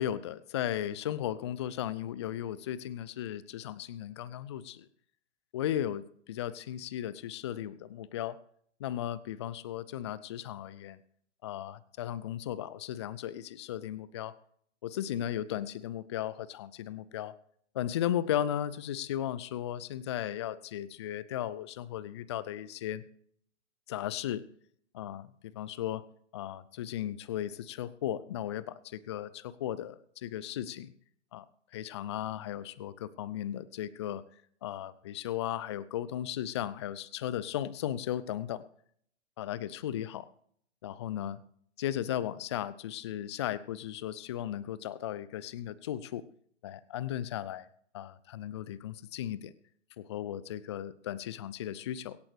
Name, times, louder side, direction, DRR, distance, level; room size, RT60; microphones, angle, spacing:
voice 1, 0.0-4.9 5.5-8.4 8.8-11.0 11.4-14.3 14.8-17.3 17.7-23.0 23.9-24.4 24.9-26.0 26.3-30.9 31.3-31.5 31.7-34.2 34.6-38.6 39.4-40.3 40.8-41.4 41.8-46.2 46.6-47.7 47.9-49.5 50.0-52.2, left 11 dB, 25° left, 19 dB, 0.5 m, -36 dB
24.0 x 8.7 x 3.3 m, 0.64 s
figure-of-eight pair, 125°, 36 cm